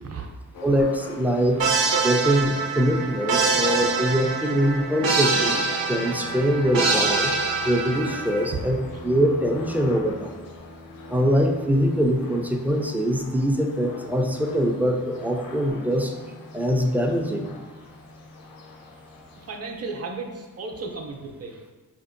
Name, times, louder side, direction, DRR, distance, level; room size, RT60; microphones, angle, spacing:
sound 1, 0.5-19.6, left 2 dB, 70° left, 0.6 m, -41 dB
voice 1, 0.6-1.6 1.9-7.3 7.6-10.3 11.1-16.2 16.5-17.5, equal, 5° right, 3 dB, 0.3 m, -23 dB
sound 2, 1.6-8.5, right 4 dB, 80° right, 0.6 m, -25 dB
voice 2, 19.3-21.7, right 4 dB, 45° right, 2 dB, 0.6 m, -35 dB
4.8 x 2.6 x 2.5 m, 1.3 s
cardioid pair, 85°, 35 cm